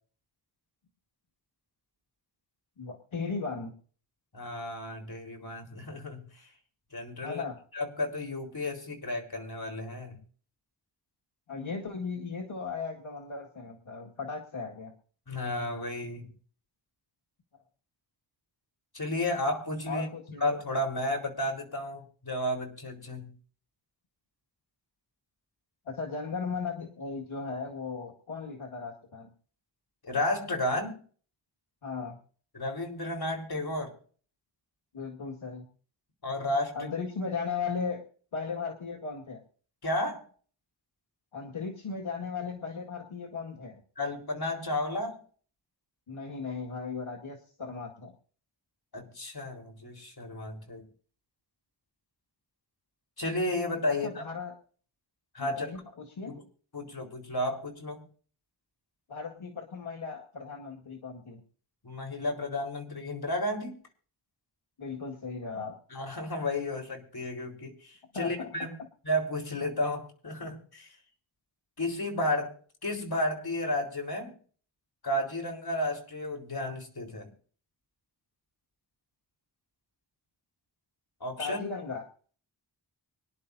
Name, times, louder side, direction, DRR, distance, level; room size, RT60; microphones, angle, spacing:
voice 1, 2.8-3.7 7.2-7.6 11.5-14.9 19.9-20.4 25.9-29.3 31.8-32.2 34.9-35.7 36.7-38.1 38.3-39.4 41.3-43.8 46.1-48.1 53.9-54.5 55.4-56.3 59.1-61.4 64.8-65.8 68.1-68.5 81.4-82.0, left 5 dB, 80° left, -1 dB, 2.1 m, -36 dB
voice 2, 4.3-6.3 6.9-7.4 7.7-10.2 15.3-16.3 18.9-20.1 20.4-23.3 30.0-31.0 32.5-33.9 36.2-36.9 39.8-40.3 44.0-45.2 48.9-50.8 53.2-54.1 55.3-55.7 56.3-56.4 56.7-58.0 61.8-63.8 65.9-68.8 69.0-70.9 71.8-72.6 72.8-74.3 75.0-77.3 81.2-81.6, left 1 dB, 50° left, 3 dB, 4.5 m, -32 dB
25.0 x 11.0 x 2.7 m, 0.43 s
wide cardioid pair, 65°, 47 cm